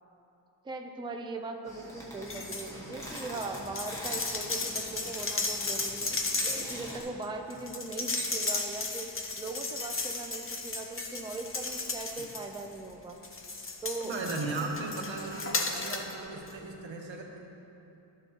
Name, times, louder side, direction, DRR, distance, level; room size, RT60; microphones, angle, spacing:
voice 1, 0.6-6.2 6.6-9.1 9.4-13.2 13.8-14.2 14.6-14.7, right 3 dB, 10° right, 4 dB, 0.4 m, -40 dB
sound 1, 1.6-7.0, equal, 5° left, 1.3 m, -45 dB
sound 2, 2.3-2.7 3.0-12.8 13.2-16.1 16.5-16.6, left 3 dB, 30° left, 0.7 m, -35 dB
voice 2, 14.0-17.4, right 3 dB, 70° right, 0 dB, 1.3 m, -37 dB
12.0 x 7.1 x 2.9 m, 3.0 s
wide cardioid pair, 105°, 46 cm